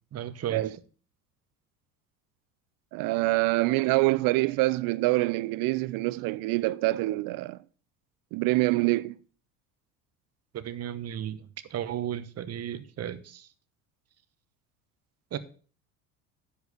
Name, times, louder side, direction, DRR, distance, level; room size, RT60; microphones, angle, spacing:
voice 1, 0.1-0.7 10.5-11.4 11.7-13.5 15.3-15.4, right 10 dB, 35° right, 1.1 m, -34 dB
voice 2, 2.9-7.6 8.3-9.2, right 20 dB, 50° right, 0.6 m, -25 dB
10.5 x 4.9 x 6.8 m
hypercardioid pair, 70°, 42 cm